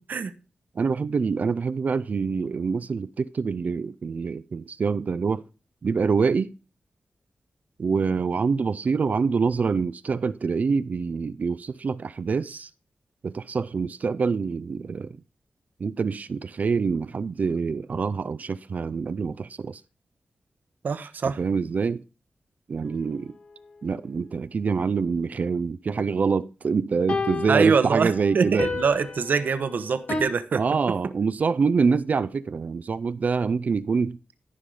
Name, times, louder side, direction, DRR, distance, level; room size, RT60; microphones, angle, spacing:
voice 1, 0.8-5.4 5.8-6.5 7.8-12.7 13.2-15.2 15.8-19.8 21.4-22.0 22.7-23.3 23.8-28.7 30.6-34.2, right 5 dB, 55° right, 0.4 m, -25 dB
voice 2, 20.8-21.4 27.5-30.6, right 5 dB, 70° right, 1.0 m, -24 dB
sound 1, 22.9-23.0 27.1-30.2, left 4 dB, 60° left, 2.2 m, -32 dB
14.0 x 5.5 x 4.8 m
wide cardioid pair, 95°, 3 cm